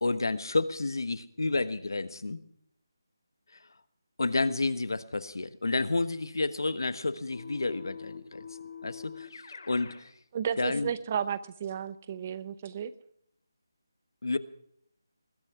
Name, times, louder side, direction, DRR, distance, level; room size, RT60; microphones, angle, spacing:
voice 1, 0.0-2.4 4.2-8.6 8.8-10.1 10.6-10.9 14.2-14.4, left 3 dB, 80° left, 13 dB, 1.3 m, -30 dB
Keyboard (musical), 7.3-10.0, left 6 dB, 60° left, 3.6 m, -44 dB
voice 2, 10.3-12.9, right 8 dB, 25° right, 16 dB, 0.6 m, -33 dB
21.0 x 10.0 x 5.9 m, 0.72 s
figure-of-eight pair, 170°, 2 cm